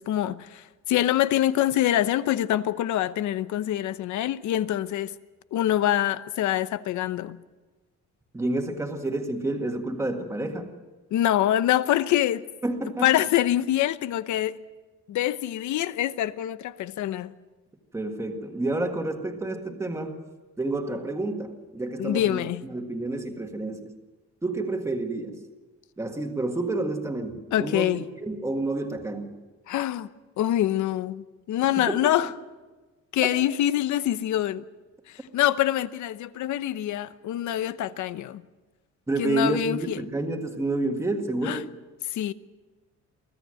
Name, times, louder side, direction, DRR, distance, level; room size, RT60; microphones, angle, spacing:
voice 1, 0.0-5.1 5.5-7.4 11.1-12.4 13.0-14.6 15.1-17.3 22.0-22.7 27.5-28.1 29.7-30.1 30.4-32.3 33.1-34.6 35.1-38.4 39.2-40.0 41.4-41.6 42.1-42.3, left 12 dB, 85° left, 0.9 m, -25 dB
voice 2, 8.3-10.7 12.6-13.1 17.9-20.2 20.6-22.4 22.7-23.9 24.4-25.4 26.0-27.9 28.2-29.4 31.8-32.0 39.1-41.7, right 2 dB, 10° right, 1.8 m, -29 dB
24.5 x 16.0 x 7.8 m
cardioid pair, 160°, 29 cm